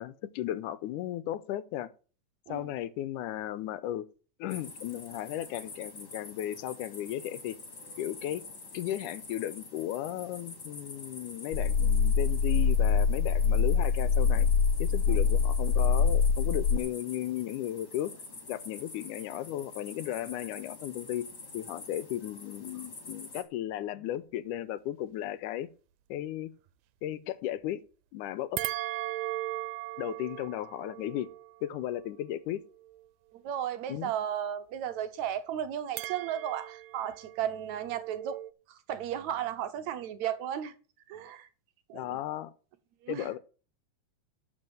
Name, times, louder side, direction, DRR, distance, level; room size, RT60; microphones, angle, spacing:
voice 1, 0.0-1.9 2.5-4.1 4.4-7.6 8.0-8.4 8.7-14.5 14.8-18.1 18.5-21.3 21.5-25.7 26.1-26.5 27.0-27.8 28.1-28.6 30.0-31.3 31.6-32.6 33.9-34.1 41.9-42.5 43.1-43.4, left 12 dB, 80° left, 2.2 m, -35 dB
sound 1, 4.5-23.4, left 3 dB, 30° left, 3.3 m, -46 dB
sound 2, 11.5-16.8, left 6 dB, 60° left, 1.9 m, -24 dB
sound 3, 28.6-33.0 36.0-38.5, right 16 dB, 90° right, 2.3 m, -39 dB
voice 2, 33.3-38.4 38.7-40.7 41.1-41.5 41.9-42.2 43.0-43.3, right 10 dB, 70° right, 2.0 m, -34 dB
12.0 x 5.2 x 7.7 m
omnidirectional pair, 3.6 m